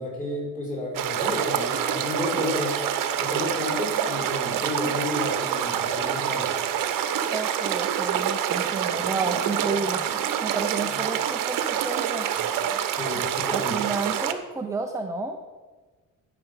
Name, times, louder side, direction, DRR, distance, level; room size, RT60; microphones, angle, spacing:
voice 1, 0.0-2.7 3.2-6.5 9.0-9.1 13.0-13.8, left 2 dB, 25° left, -4 dB, 4.5 m, -31 dB
sound 1, 0.9-14.3, right 9 dB, 75° right, 0.9 m, -26 dB
voice 2, 7.3-10.1 10.4-12.3 13.1-15.4, right 4 dB, 10° right, 4 dB, 0.5 m, -31 dB
11.5 x 5.9 x 8.1 m, 1.3 s
cardioid pair, 175°, 33 cm